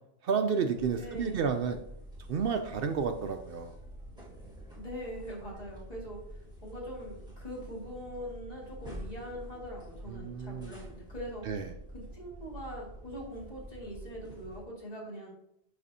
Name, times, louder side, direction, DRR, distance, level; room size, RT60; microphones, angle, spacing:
voice 1, 0.2-1.8 2.3-3.7 10.1-10.8 11.5-11.7, right 6 dB, 65° right, 6 dB, 0.7 m, -31 dB
sound 1, 0.8-14.6, equal, 5° right, 1.4 m, -47 dB
voice 2, 1.0-1.6 4.7-6.2 6.6-11.5 11.9-15.3, equal, 35° left, -5 dB, 2.4 m, -42 dB
11.0 x 4.1 x 2.7 m, 0.75 s
omnidirectional pair, 1.1 m